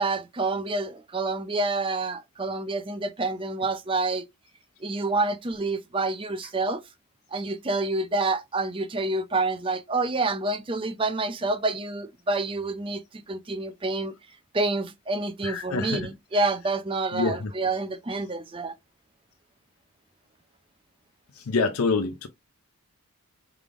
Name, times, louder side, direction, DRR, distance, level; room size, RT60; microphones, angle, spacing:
voice 1, 0.0-4.3 4.8-6.8 7.3-14.1 14.5-18.8, right 3 dB, 25° right, 0.5 m, -28 dB
voice 2, 15.4-16.1 17.1-17.5 21.3-22.3, left 4 dB, 75° left, 0.5 m, -26 dB
4.9 x 3.4 x 2.5 m
head